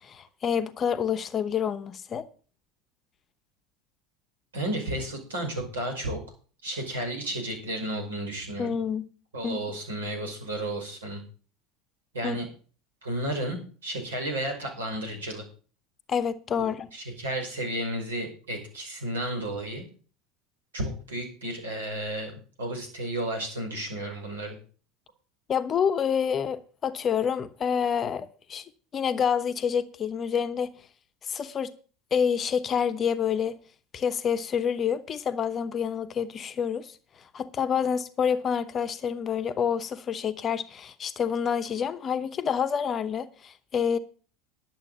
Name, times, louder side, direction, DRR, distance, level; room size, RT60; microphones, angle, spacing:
voice 1, 0.0-2.3 8.6-9.0 9.4-9.6 12.2-12.4 16.1-16.9 25.5-28.6 28.9-30.7 31.2-31.7 32.1-33.6 33.9-37.0 37.3-44.0, left 7 dB, 30° left, 0.9 m, -28 dB
voice 2, 4.5-6.2 6.6-8.7 9.3-11.2 12.1-12.5 13.0-15.5 16.6-19.9 20.7-24.6, right 1 dB, 70° right, 5.3 m, -32 dB
11.0 x 7.9 x 6.7 m
figure-of-eight pair, 75°, 0 cm